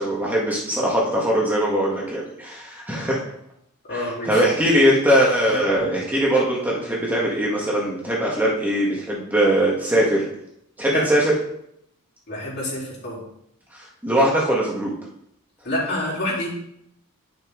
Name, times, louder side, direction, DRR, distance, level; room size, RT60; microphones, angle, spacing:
voice 1, 0.0-3.2 3.9-10.3 10.8-11.3 13.7-14.9, equal, 10° right, -4 dB, 1.5 m, -21 dB
voice 2, 3.9-4.4 5.8-5.9 10.9-11.0 12.3-13.2 15.6-16.5, left 1 dB, 50° left, -5 dB, 3.5 m, -27 dB
10.5 x 6.0 x 3.8 m, 0.74 s
head